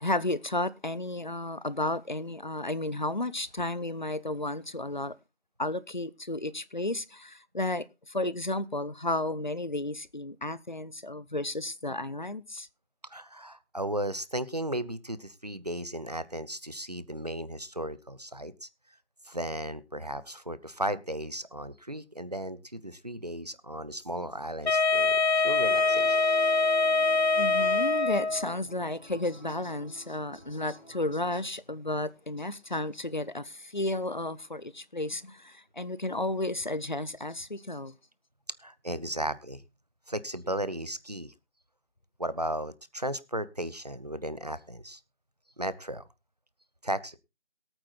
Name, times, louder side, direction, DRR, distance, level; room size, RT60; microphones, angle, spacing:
voice 1, 0.0-5.1 5.6-12.7 27.4-37.9, left 2 dB, 45° left, 0.6 m, -33 dB
voice 2, 13.1-18.7 19.3-26.2 38.6-39.6 40.1-41.3 42.2-45.0 45.6-46.0 46.8-47.2, right 1 dB, 35° right, 0.7 m, -35 dB
Wind instrument woodwind instrument, 24.6-28.5, left 3 dB, 70° left, 0.9 m, -24 dB
sound 1, 25.2-31.2, left 1 dB, 15° left, 4.4 m, -49 dB
22.5 x 9.0 x 2.4 m
figure-of-eight pair, 175°, 34 cm